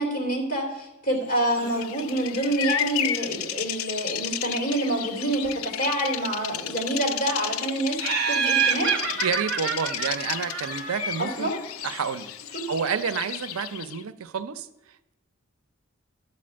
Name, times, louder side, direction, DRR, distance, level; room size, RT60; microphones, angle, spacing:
voice 1, 0.0-8.0 8.3-8.9 11.2-11.5, right 1 dB, 40° left, 1 dB, 2.6 m, -27 dB
Bird vocalization bird call bird song, 1.4-14.0, left 10 dB, 75° left, 0.4 m, -33 dB
Laughter, 8.0-11.3, right 6 dB, 55° right, 1.1 m, -27 dB
voice 2, 9.2-11.5 11.8-14.7, right 6 dB, 85° right, 12 dB, 0.5 m, -29 dB
11.0 x 4.3 x 7.5 m, 0.95 s
head